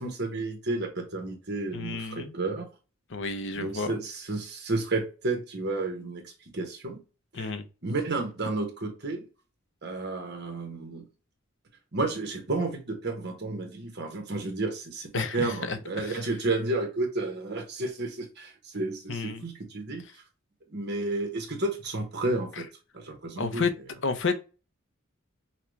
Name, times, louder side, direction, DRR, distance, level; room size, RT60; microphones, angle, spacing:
voice 1, 0.0-2.7 3.6-7.0 7.3-7.5 7.8-9.3 9.8-11.0 11.9-20.0 20.7-22.6 22.9-23.7, right 2 dB, 55° right, 1.3 m, -31 dB
voice 2, 1.7-2.3 3.1-4.0 7.3-7.7 15.1-16.3 19.1-19.4 22.6-22.7 23.4-23.7 24.0-24.4, left 4 dB, 60° left, 0.7 m, -31 dB
5.8 x 2.3 x 3.2 m
head